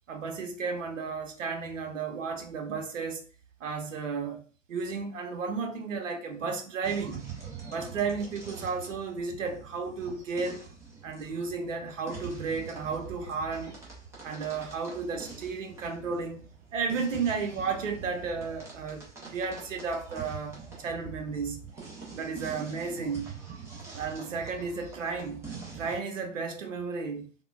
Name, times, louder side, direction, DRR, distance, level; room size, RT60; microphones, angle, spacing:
voice 1, 0.1-3.2 3.6-4.4 4.7-7.3 7.7-10.6 11.0-13.8 14.2-16.4 16.7-21.6 22.1-23.3 23.9-25.4 25.7-27.3, right 5 dB, 75° right, 0.8 m, -33 dB
sound 1, 6.8-26.0, right 5 dB, 10° right, 0.4 m, -44 dB
3.6 x 2.1 x 2.3 m
hypercardioid pair, 120°, 38 cm